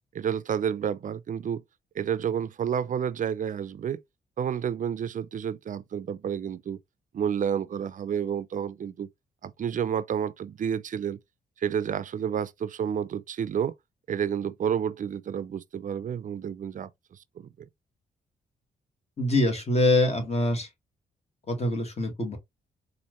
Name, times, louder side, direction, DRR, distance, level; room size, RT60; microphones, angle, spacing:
voice 1, 0.1-1.6 2.0-4.0 4.4-6.8 7.1-9.1 9.4-11.2 11.6-13.7 14.1-17.7, right 8 dB, 50° right, 0.4 m, -30 dB
voice 2, 19.2-20.7 21.5-22.4, left 1 dB, 40° left, 1.7 m, -24 dB
4.3 x 2.6 x 3.0 m
cardioid pair, 70°, 17 cm